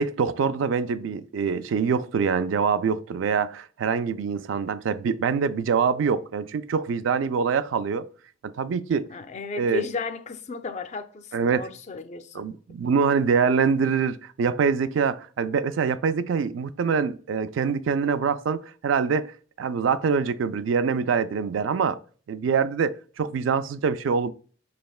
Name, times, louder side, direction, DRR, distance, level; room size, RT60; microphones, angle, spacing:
voice 1, 0.0-8.1 8.4-9.1 9.6-9.9 11.3-11.7 12.3-19.3 19.6-22.0 22.3-24.3, right 6 dB, 80° right, 0.3 m, -24 dB
voice 2, 9.1-12.4, left 4 dB, 35° left, 0.4 m, -34 dB
5.4 x 3.3 x 2.3 m
head